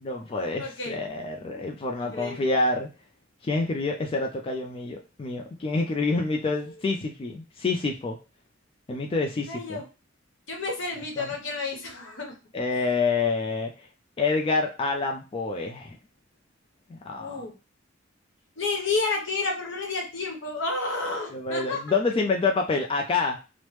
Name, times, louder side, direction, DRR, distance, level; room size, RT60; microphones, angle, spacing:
voice 1, 0.0-2.9 3.4-8.2 8.9-9.8 11.0-11.3 12.5-13.9 14.2-16.0 16.9-17.4 21.3-23.4, left 3 dB, 30° left, 2 dB, 0.3 m, -27 dB
voice 2, 0.6-1.0 2.1-2.4 9.5-9.8 10.5-12.3 12.7-12.8 17.2-17.5 18.6-21.8, left 3 dB, 75° left, 2 dB, 0.9 m, -30 dB
3.0 x 2.0 x 3.1 m, 0.30 s
head